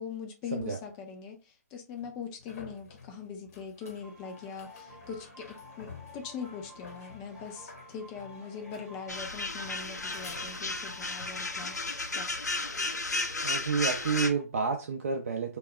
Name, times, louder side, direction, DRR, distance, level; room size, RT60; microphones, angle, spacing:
voice 1, 0.0-11.8 12.1-12.4, left 6 dB, 20° left, 0.5 m, -41 dB
sound 1, 0.6-0.7 2.0-11.1 14.5-14.6, left 4 dB, 55° left, 1.1 m, -51 dB
sound 2, 3.8-14.4, left 1 dB, 10° right, 0.7 m, -52 dB
sound 3, 9.1-14.3, left 2 dB, 85° left, 0.6 m, -33 dB
voice 2, 13.4-15.6, right 5 dB, 55° right, 0.4 m, -30 dB
2.3 x 2.2 x 3.6 m
figure-of-eight pair, 140°, 9 cm